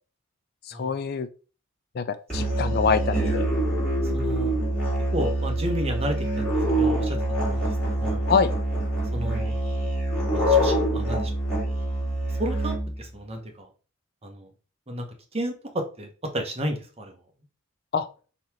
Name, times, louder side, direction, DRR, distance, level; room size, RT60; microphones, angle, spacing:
voice 1, 0.7-1.3 1.9-3.5 8.3-8.5 17.9-18.1, left 5 dB, 45° left, 11 dB, 0.3 m, -25 dB
Musical instrument, 2.3-13.1, right 1 dB, 5° left, 2.0 m, -25 dB
voice 2, 4.1-4.5 5.1-6.2 6.8-8.2 9.1-9.5 10.3-11.4 12.4-13.7 14.2-14.5 14.9-15.0 15.3-17.1, equal, 30° right, 3 dB, 0.9 m, -32 dB
3.9 x 2.9 x 4.7 m, 0.36 s
head